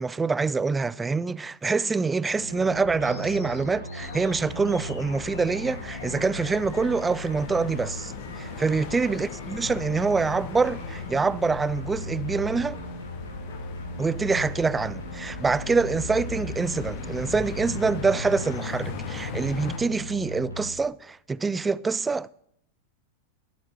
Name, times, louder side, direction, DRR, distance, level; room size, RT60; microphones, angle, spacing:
voice 1, 0.0-12.8 14.0-22.3, right 4 dB, 15° right, 0.3 m, -25 dB
sound 1, 2.4-20.7, equal, 80° left, 2.3 m, -38 dB
Animal, 3.0-11.1, left 4 dB, 65° left, 2.3 m, -47 dB
sound 2, 4.0-19.8, left 6 dB, 45° left, 1.5 m, -39 dB
11.5 x 11.5 x 4.4 m
figure-of-eight pair, 90°, 0 cm